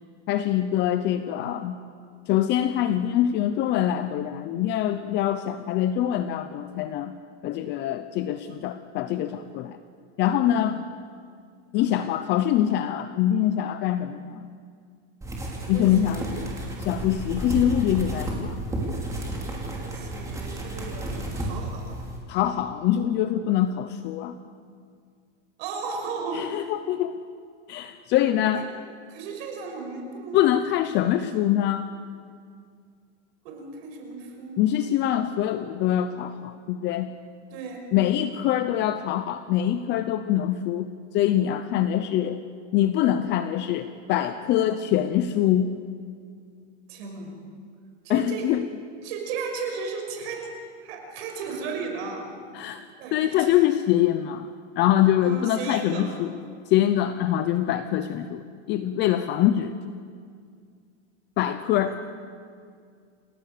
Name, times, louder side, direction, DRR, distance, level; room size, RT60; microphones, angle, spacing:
voice 1, 0.3-1.8 2.3-7.1 7.4-9.8 10.2-10.8 11.7-14.5 15.7-16.2 16.8-18.6 22.3-24.4 26.3-27.1 27.7-28.7 30.3-31.9 34.6-37.1 37.9-40.9 41.1-42.4 42.7-45.7 48.1-48.6 52.5-56.3 56.7-58.4 58.7-59.7 61.4-62.0, left 11 dB, 30° left, 11 dB, 0.7 m, -24 dB
voice 2, 10.4-10.8 15.7-16.4 19.8-22.0 25.6-26.5 28.5-28.6 29.1-30.4 33.4-34.6 37.5-37.9 46.9-47.3 48.0-48.6 49.0-50.5 50.8-52.3 53.0-53.5 55.2-56.3 61.9-62.0, right 5 dB, 55° right, 3 dB, 5.6 m, -35 dB
sound 1, 15.2-22.2, right 1 dB, 10° right, 3.8 m, -32 dB
28.5 x 17.0 x 6.8 m, 2.2 s
supercardioid pair, 155°, 35 cm